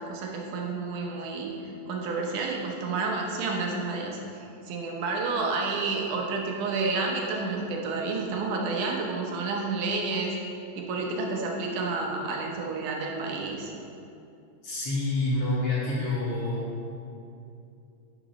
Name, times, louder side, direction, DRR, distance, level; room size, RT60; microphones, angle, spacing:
voice 1, 0.0-10.4 10.8-13.7, right 3 dB, 80° right, 0 dB, 2.3 m, -30 dB
voice 2, 14.6-16.6, left 2 dB, 55° left, -7 dB, 2.2 m, -27 dB
9.9 x 5.9 x 3.1 m, 2.6 s
omnidirectional pair, 3.7 m